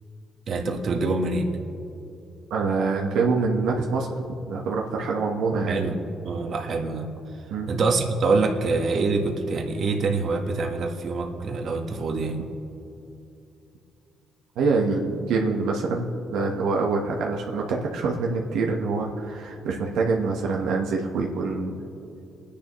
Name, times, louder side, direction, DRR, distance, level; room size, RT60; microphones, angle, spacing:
voice 1, 0.5-1.5 5.7-7.1 7.7-12.4, right 3 dB, 55° right, 3 dB, 1.4 m, -25 dB
voice 2, 2.5-5.8 7.5-7.7 14.6-21.8, right 4 dB, 85° right, 0 dB, 1.2 m, -25 dB
27.5 x 10.0 x 3.1 m, 2.8 s
cardioid pair, 90°, 0 cm